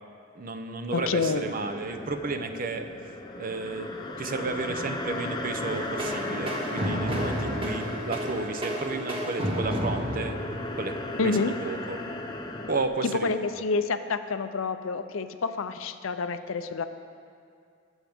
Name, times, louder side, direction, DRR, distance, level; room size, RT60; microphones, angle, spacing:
voice 1, 0.4-2.9 3.4-10.4 10.8-10.9 11.2-12.0 12.7-13.3, right 3 dB, 45° right, 7 dB, 0.7 m, -32 dB
voice 2, 0.9-1.5 11.2-11.5 13.1-16.8, left 4 dB, 85° left, 10 dB, 0.6 m, -28 dB
sound 1, 1.0-12.9, left 1 dB, 20° left, 0.7 m, -36 dB
sound 2, 5.7-11.2, equal, 30° right, 1.3 m, -32 dB
20.5 x 7.2 x 3.6 m, 2.3 s
head